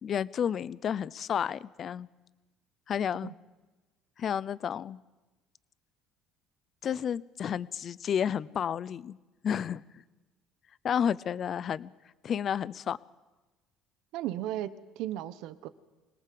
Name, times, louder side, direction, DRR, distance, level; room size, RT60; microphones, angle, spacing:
voice 1, 0.0-2.1 2.9-3.3 4.2-5.0 6.8-9.2 9.4-9.8 10.8-11.9 12.2-13.0, left 8 dB, 40° left, 20 dB, 0.6 m, -31 dB
voice 2, 14.1-15.7, right 13 dB, 75° right, 14 dB, 1.2 m, -35 dB
25.5 x 18.5 x 7.8 m, 1.2 s
cardioid pair, 120°, 0 cm